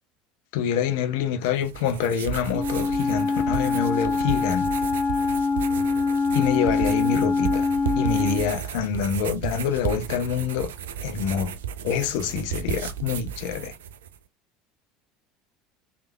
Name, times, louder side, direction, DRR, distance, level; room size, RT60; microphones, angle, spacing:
voice 1, 0.5-4.7 6.3-10.7 11.0-11.5 11.8-13.7, left 7 dB, 60° left, 0.5 m, -26 dB
sound 1, 1.5-14.2, right 8 dB, 70° right, 0.3 m, -34 dB
Wind instrument woodwind instrument, 2.5-8.5, left 4 dB, 20° left, 1.8 m, -24 dB
3.2 x 2.2 x 3.2 m
figure-of-eight pair, 70°, 0 cm